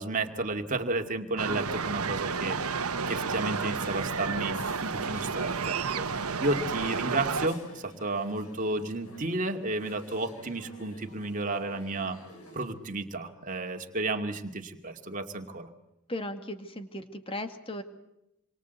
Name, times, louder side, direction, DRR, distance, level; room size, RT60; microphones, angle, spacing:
voice 1, 0.0-2.6 3.1-6.1 6.4-12.2 12.5-15.7, right 2 dB, 35° right, 4 dB, 2.4 m, -32 dB
sound 1, 1.4-7.5, right 5 dB, 90° right, 1.3 m, -31 dB
sound 2, 3.0-12.7, left 1 dB, 85° left, 7.8 m, -50 dB
voice 2, 16.1-17.8, left 1 dB, 25° left, 8 dB, 2.1 m, -37 dB
28.0 x 24.0 x 8.2 m, 0.85 s
head